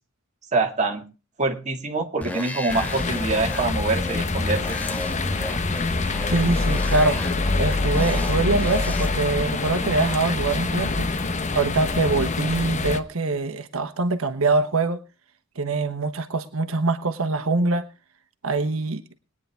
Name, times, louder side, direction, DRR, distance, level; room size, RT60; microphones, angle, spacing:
voice 1, 0.5-1.0 1.4-4.8, right 3 dB, 35° right, 3 dB, 1.9 m, -25 dB
sound 1, 2.2-9.1, left 2 dB, 5° left, 1.2 m, -31 dB
sound 2, 2.7-13.0, left 3 dB, 35° left, 1.0 m, -26 dB
voice 2, 6.3-7.2 7.6-11.1 11.5-15.0 15.6-17.9 18.4-19.0, right 3 dB, 80° right, 8 dB, 1.2 m, -24 dB
21.0 x 9.6 x 3.4 m, 0.30 s
head